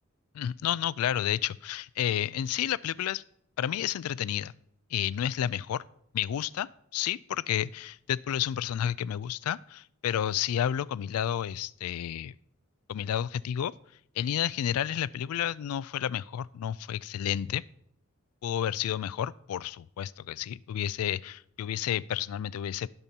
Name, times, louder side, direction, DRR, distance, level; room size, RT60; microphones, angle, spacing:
voice 1, 0.3-3.2 3.6-4.5 4.9-5.8 6.1-12.3 12.9-13.7 14.2-17.6 18.4-22.9, left 10 dB, 85° left, 20 dB, 0.3 m, -31 dB
19.5 x 6.8 x 2.8 m, 0.68 s
head